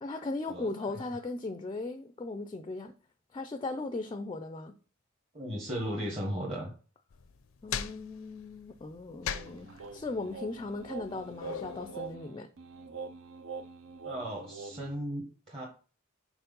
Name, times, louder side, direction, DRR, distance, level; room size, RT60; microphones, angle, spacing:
voice 1, 0.0-2.9 3.3-4.7 7.6-12.5, left 3 dB, 25° left, 0.4 m, -38 dB
voice 2, 5.3-6.7 14.0-15.7, equal, 30° right, 1.2 m, -36 dB
sound 1, 7.1-12.1, left 8 dB, 80° left, 0.5 m, -41 dB
sound 2, 9.2-15.0, right 4 dB, 75° right, 0.6 m, -44 dB
4.5 x 4.1 x 5.3 m
head